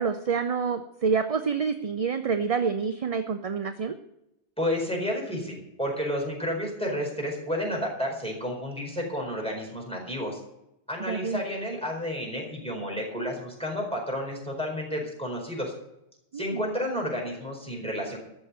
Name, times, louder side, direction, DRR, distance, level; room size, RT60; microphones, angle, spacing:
voice 1, 0.0-4.0 11.1-11.4 16.3-16.7, right 5 dB, 40° right, 8 dB, 0.6 m, -27 dB
voice 2, 4.6-10.4 10.9-15.7 16.3-18.2, equal, 5° left, -2 dB, 4.5 m, -31 dB
14.0 x 6.0 x 9.5 m, 0.86 s
omnidirectional pair, 1.1 m